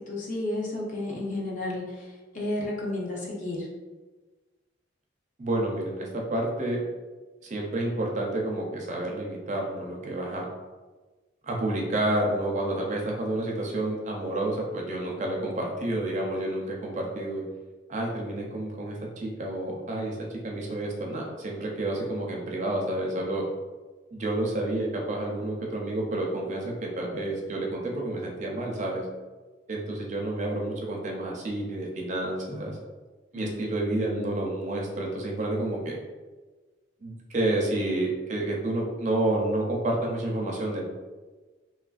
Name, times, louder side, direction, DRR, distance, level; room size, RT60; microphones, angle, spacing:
voice 1, 0.1-2.1 2.3-3.7 33.4-34.3, left 1 dB, 40° left, -3 dB, 0.5 m, -32 dB
voice 2, 5.4-6.8 7.4-10.5 11.4-17.4 17.9-20.2 20.4-23.4 24.1-29.1 29.7-32.8 33.3-36.0 37.0-40.8, right 1 dB, 40° right, -1 dB, 0.4 m, -29 dB
3.0 x 2.4 x 2.3 m, 1.3 s
head